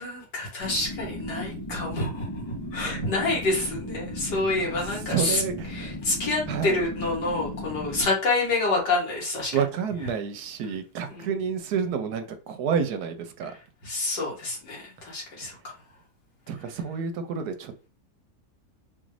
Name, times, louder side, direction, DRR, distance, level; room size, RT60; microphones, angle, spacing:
voice 1, 0.0-5.4 5.7-9.5 11.1-11.3 13.8-15.7, left 2 dB, 90° left, 2.3 m, -28 dB
sound 1, 0.6-8.0, left 1 dB, 40° left, 0.3 m, -36 dB
voice 2, 2.8-3.1 3.6-3.7 4.3-4.4 4.7-5.9 6.5-6.9 9.5-13.5 16.5-17.9, right 6 dB, 75° right, 1.1 m, -30 dB
4.0 x 2.5 x 3.2 m
omnidirectional pair, 1.8 m